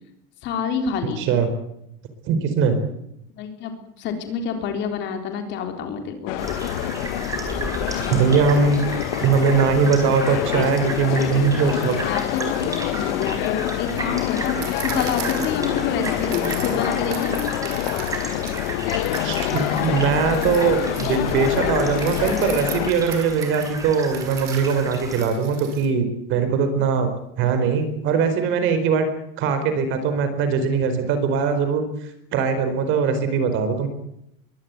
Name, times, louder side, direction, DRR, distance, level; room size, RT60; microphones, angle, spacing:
voice 1, 0.4-1.3 3.4-6.4 7.9-8.0 12.1-17.4, left 6 dB, 40° left, 6 dB, 3.8 m, -28 dB
voice 2, 1.2-1.5 2.3-2.8 8.1-8.9 9.2-12.0 19.2-27.1 27.4-29.1 29.4-31.8 32.3-33.9, right 5 dB, 40° right, 9 dB, 4.4 m, -21 dB
sound 1, 6.3-22.9, left 15 dB, 70° left, 1.5 m, -26 dB
sound 2, 6.4-25.3, right 2 dB, 10° right, 5.0 m, -33 dB
sound 3, 14.6-18.7 19.0-25.9, right 11 dB, 90° right, 5.5 m, -39 dB
22.5 x 17.5 x 9.6 m, 0.80 s
cardioid pair, 175°, 29 cm